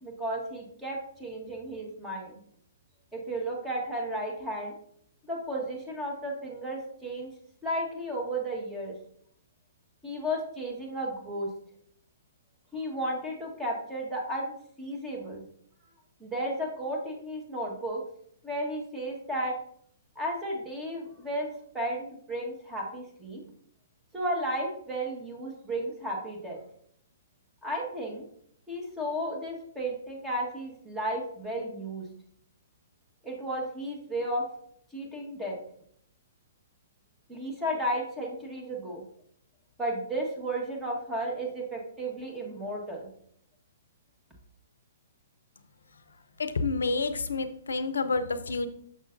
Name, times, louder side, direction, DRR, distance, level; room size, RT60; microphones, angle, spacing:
voice 1, 0.0-2.4 3.1-4.7 5.3-7.3 7.6-8.9 10.0-11.5 12.7-15.4 16.2-18.0 18.4-19.6 20.1-21.5 21.7-23.4 24.1-26.6 27.6-28.2 28.7-32.1 33.2-34.4 34.9-35.6 37.3-39.0 39.8-43.1, right 1 dB, 10° right, -1 dB, 1.4 m, -33 dB
voice 2, 46.4-48.7, left 3 dB, 80° left, 12 dB, 0.6 m, -29 dB
6.7 x 6.1 x 2.6 m, 0.66 s
hypercardioid pair, 125°, 0 cm